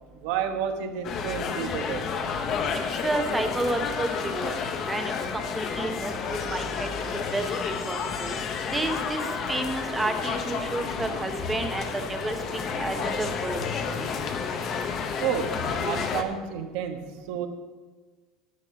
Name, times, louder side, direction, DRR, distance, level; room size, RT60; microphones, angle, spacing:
voice 1, 0.1-2.1 15.2-17.5, right 8 dB, 60° right, 6 dB, 1.3 m, -31 dB
sound 1, 1.0-16.2, left 5 dB, 30° left, 0.9 m, -31 dB
voice 2, 3.0-4.5 4.9-8.3 8.7-9.2 9.5-13.6, right 2 dB, 10° right, 5 dB, 1.0 m, -31 dB
11.0 x 8.1 x 6.9 m, 1.4 s
cardioid pair, 175°, 0 cm